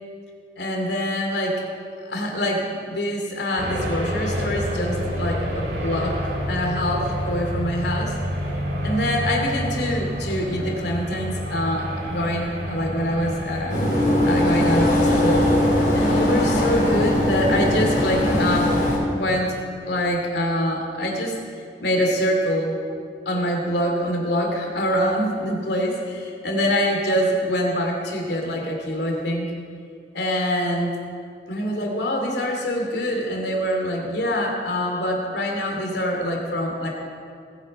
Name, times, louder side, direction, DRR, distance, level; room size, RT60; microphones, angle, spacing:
voice 1, 0.6-1.6 2.1-6.2 6.5-8.1 8.8-13.7 14.3-15.5 15.9-18.7 19.1-19.5 19.9-21.3 21.8-22.8 23.3-29.5 30.1-31.0 31.5-36.9, equal, 75° left, 1 dB, 2.6 m, -25 dB
sound 1, 3.6-17.4, equal, 80° right, 2.2 m, -29 dB
sound 2, 13.7-19.0, left 1 dB, 50° left, 4.1 m, -20 dB
20.0 x 8.4 x 5.4 m, 2.3 s
head